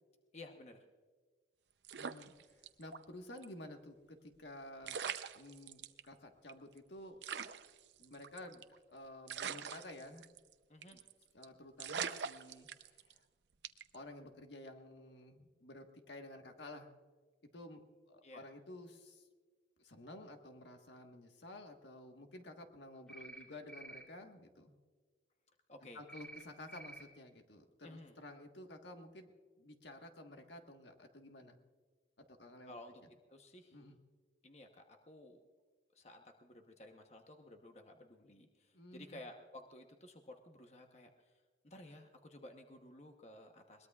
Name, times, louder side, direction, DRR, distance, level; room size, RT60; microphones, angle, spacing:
voice 1, 0.3-0.8 10.7-11.0 18.2-18.5 25.7-26.0 27.8-28.1 32.7-33.0 33.3-33.8 34.4-35.4 35.9-41.4 41.6-43.9, left 1 dB, 35° left, 4 dB, 1.0 m, -54 dB
sound 1, 1.8-3.0 3.4-3.5 4.5-4.6 4.8-6.0 6.5-6.6 6.8-6.9 7.2-8.8 9.3-10.5 10.8-11.1 11.4-11.5 11.8-13.2 13.6-14.0, right 7 dB, 80° right, 0.6 m, -43 dB
voice 2, 1.9-5.0 5.3-7.2 8.0-10.3 10.9-11.0 11.3-13.2 13.9-16.9 17.5-17.8 18.1-19.3 19.8-24.7 25.9-31.6 32.4-33.1 33.7-34.0 38.7-39.2, left 1 dB, 80° left, 4 dB, 1.4 m, -52 dB
sound 2, 23.1-23.4 23.7-24.0 26.1-26.4 26.7-27.0, right 2 dB, 5° left, 3.1 m, -50 dB
22.0 x 20.0 x 2.4 m, 1.4 s
head